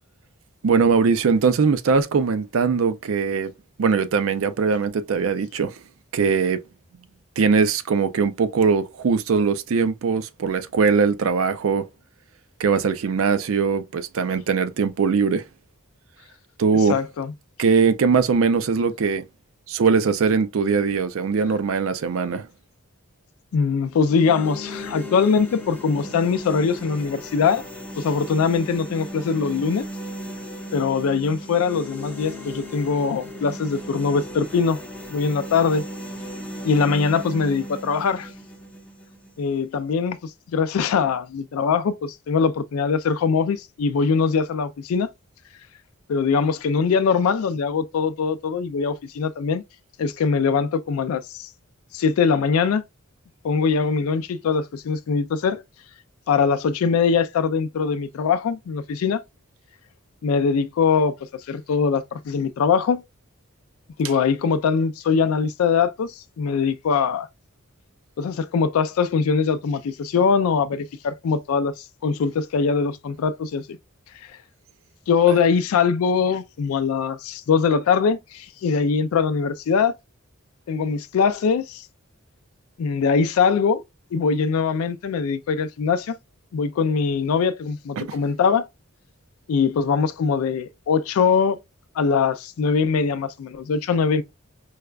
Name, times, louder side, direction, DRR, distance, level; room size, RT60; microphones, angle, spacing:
voice 1, 0.6-3.5 3.8-5.7 6.1-6.6 7.4-11.8 12.6-15.4 16.6-17.0 17.6-19.2 19.7-22.5 75.3-75.4 88.0-88.2, right 5 dB, 75° right, 0.4 m, -21 dB
voice 2, 16.9-17.3 23.5-27.6 28.0-29.8 30.7-34.8 35.1-35.8 36.6-38.3 39.4-45.1 46.1-49.6 50.0-51.5 51.9-52.8 53.4-55.6 56.3-59.2 60.2-61.2 61.5-63.0 64.0-67.3 68.2-73.7 75.1-79.9 80.7-81.9 82.8-83.8 84.1-86.1 86.5-88.7 89.5-91.6 92.0-94.2, left 5 dB, 90° left, 0.4 m, -22 dB
sound 1, 23.9-39.9, equal, 5° left, 0.6 m, -36 dB
4.7 x 2.2 x 2.3 m
head